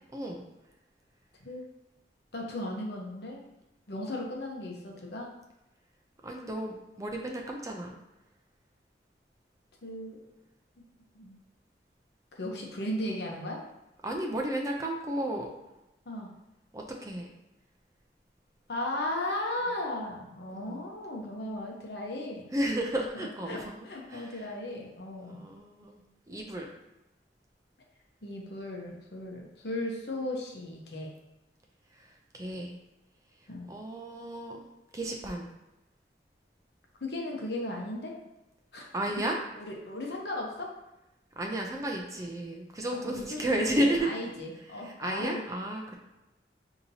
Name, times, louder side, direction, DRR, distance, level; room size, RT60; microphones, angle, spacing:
voice 1, 0.1-0.4 6.2-8.0 14.0-15.5 16.7-17.3 20.5-20.8 22.5-23.8 24.1-24.4 25.3-26.0 26.3-26.7 32.3-32.8 33.7-34.6 34.9-35.5 38.9-39.4 41.4-44.1 44.8-46.0, right 1 dB, 20° right, 1 dB, 0.4 m, -32 dB
voice 2, 2.3-3.4 3.9-5.3 9.8-10.2 11.1-11.4 12.3-13.6 16.0-16.3 18.7-22.7 23.1-25.4 28.2-31.1 33.5-33.7 37.0-38.1 38.7-38.9 39.2-39.3 39.6-40.7 42.9-45.4, left 1 dB, 70° left, 0 dB, 0.8 m, -36 dB
5.3 x 2.8 x 2.7 m, 0.96 s
head